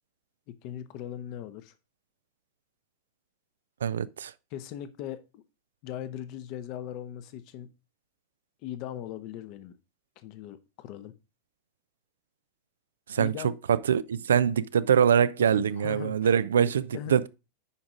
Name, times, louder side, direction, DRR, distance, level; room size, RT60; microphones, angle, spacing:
voice 1, 0.5-1.7 4.5-5.4 5.8-7.7 8.6-9.8 10.2-11.1 13.2-13.5 15.5-16.3 16.6-17.2, left 11 dB, 45° left, 0.9 m, -39 dB
voice 2, 3.8-4.3 13.1-13.3 13.7-17.3, right 8 dB, 65° right, 0.4 m, -24 dB
9.7 x 5.0 x 3.7 m
figure-of-eight pair, 90°, 0 cm